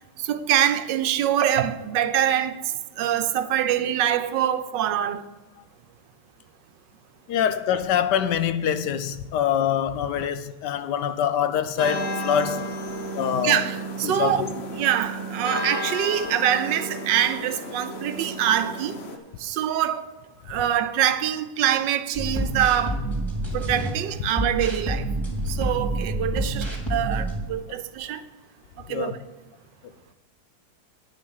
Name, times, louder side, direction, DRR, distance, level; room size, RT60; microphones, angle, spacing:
voice 1, 0.0-2.6 3.0-5.2 13.4-14.4 14.8-19.0 19.4-20.1 20.5-23.0 23.5-25.1 25.5-28.2 28.9-29.1, right 10 dB, 75° right, 1.3 m, -24 dB
voice 2, 7.3-12.6 13.1-13.6 14.0-14.5 28.9-29.2, left 9 dB, 75° left, 1.2 m, -24 dB
sound 1, 11.8-19.2, equal, 40° left, 1.1 m, -32 dB
sound 2, 22.1-23.9 24.3-27.4, right 1 dB, ahead, 3.0 m, -28 dB
9.7 x 6.7 x 6.3 m
omnidirectional pair, 2.0 m